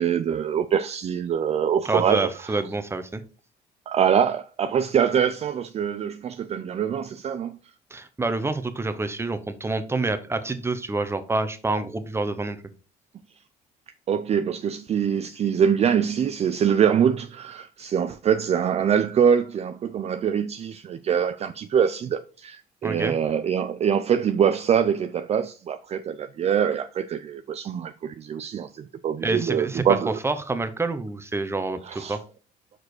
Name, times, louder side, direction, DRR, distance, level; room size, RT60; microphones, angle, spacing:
voice 1, 0.0-2.6 3.9-7.6 14.1-30.1 31.8-32.2, right 8 dB, 40° right, 0.5 m, -24 dB
voice 2, 1.8-3.2 7.9-12.6 22.8-23.2 29.2-32.2, right 3 dB, 15° right, 0.9 m, -27 dB
6.2 x 4.8 x 4.8 m
cardioid pair, 110°, 17 cm